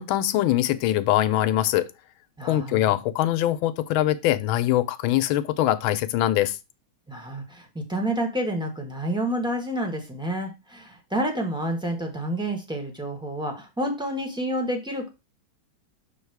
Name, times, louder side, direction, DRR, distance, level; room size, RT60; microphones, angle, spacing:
voice 1, 0.0-1.9 2.4-6.6, left 13 dB, 85° left, 1.4 m, -23 dB
voice 2, 2.4-2.9 7.1-15.1, right 1 dB, 5° right, 0.8 m, -29 dB
6.4 x 3.5 x 4.6 m
omnidirectional pair, 2.2 m